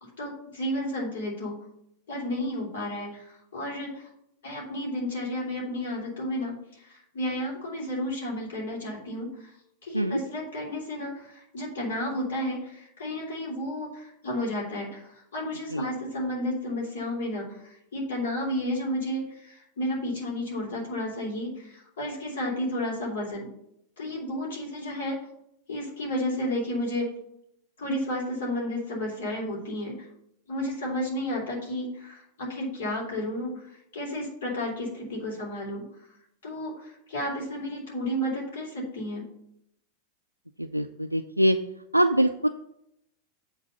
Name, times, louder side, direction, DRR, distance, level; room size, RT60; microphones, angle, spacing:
voice 1, 0.2-1.6 2.1-4.1 4.4-9.5 9.8-23.5 24.0-25.2 25.7-27.1 27.8-30.1 30.5-35.8 36.4-39.3, left 1 dB, 60° left, -2 dB, 3.2 m, -32 dB
voice 2, 40.6-41.6 41.9-42.5, equal, 90° right, 5 dB, 0.3 m, -23 dB
8.2 x 4.1 x 6.8 m, 0.77 s
figure-of-eight pair, 90°, 0 cm